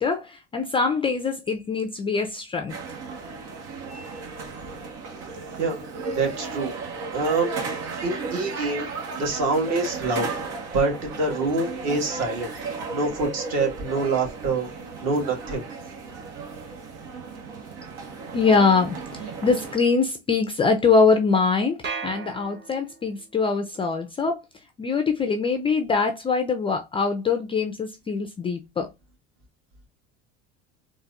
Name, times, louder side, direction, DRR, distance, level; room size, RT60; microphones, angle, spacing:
voice 1, 0.0-2.7 18.3-21.8 22.0-24.4 24.8-28.9, left 4 dB, 15° left, 0.3 m, -23 dB
sound 1, 2.7-19.7, right 4 dB, 85° right, 1.4 m, -35 dB
voice 2, 6.1-6.7 7.1-7.5 8.0-8.9 9.2-10.3 10.7-12.5 12.9-14.7 15.0-15.6, right 3 dB, 50° right, 1.6 m, -25 dB
sound 2, 21.8-23.2, right 5 dB, 35° right, 1.2 m, -35 dB
4.0 x 2.5 x 2.4 m
cardioid pair, 135°, 33 cm